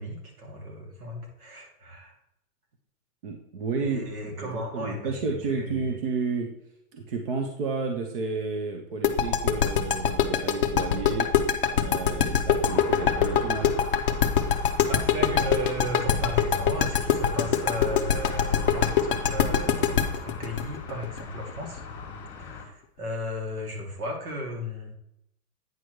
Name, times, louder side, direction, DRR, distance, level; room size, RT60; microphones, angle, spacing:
voice 1, 0.0-2.2 3.8-5.9 14.9-21.8 22.6-24.9, equal, 70° right, 1 dB, 2.5 m, -35 dB
voice 2, 3.2-6.5 6.9-11.3 11.7-13.7, right 4 dB, 35° right, 4 dB, 0.7 m, -31 dB
sound 1, 9.0-21.8, left 8 dB, 35° left, 0.5 m, -23 dB
sound 2, 12.6-22.6, left 4 dB, 5° left, 1.5 m, -41 dB
9.1 x 6.2 x 3.2 m, 0.81 s
hypercardioid pair, 165°, 46 cm